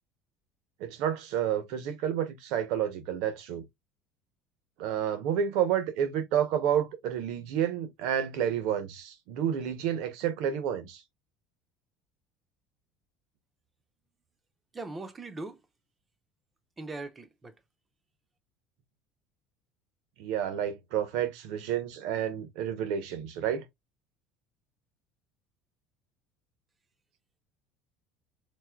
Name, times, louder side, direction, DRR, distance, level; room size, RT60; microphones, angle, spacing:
voice 1, 0.8-3.6 4.8-11.0 20.2-23.6, right 9 dB, 65° right, 0.9 m, -30 dB
voice 2, 14.7-15.6 16.8-17.5, right 3 dB, 15° right, 0.6 m, -40 dB
4.3 x 2.6 x 2.4 m
cardioid pair, 165°, 0 cm